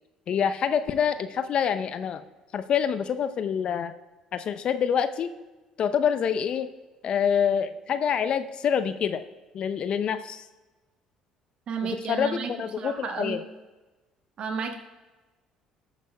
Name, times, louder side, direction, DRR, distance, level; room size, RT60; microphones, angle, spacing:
voice 1, 0.3-2.2 2.5-3.9 4.3-5.3 5.8-6.7 7.0-9.2 9.5-10.4 11.8-13.4, left 7 dB, 50° left, 11 dB, 0.7 m, -26 dB
voice 2, 11.7-13.4 14.4-14.8, right 5 dB, 50° right, 4 dB, 1.6 m, -32 dB
19.5 x 9.1 x 2.3 m, 1.2 s
hypercardioid pair, 55°, 2 cm